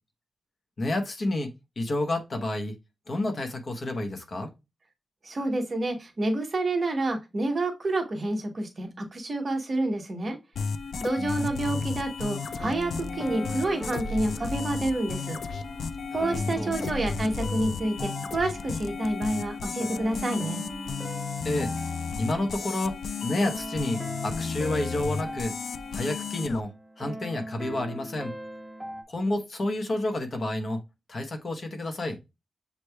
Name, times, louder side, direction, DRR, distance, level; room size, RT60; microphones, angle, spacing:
voice 1, 0.8-1.5 1.8-2.8 3.1-4.5 11.2-11.9 16.1-16.2 16.6-16.7 21.4-21.7 22.2-23.0 23.2-25.5 25.9-26.7 27.0-28.3 29.1-30.8 31.1-32.2, left 1 dB, 40° left, 4 dB, 0.9 m, -30 dB
voice 2, 5.2-10.4 11.0-15.4 16.1-20.6, right 2 dB, 35° right, 4 dB, 0.9 m, -29 dB
sound 1, 10.6-26.6, left 5 dB, 90° left, 0.3 m, -33 dB
sound 2, 11.7-29.0, equal, 5° right, 0.6 m, -41 dB
6.6 x 3.1 x 2.2 m, 0.24 s
wide cardioid pair, 165°, 0 cm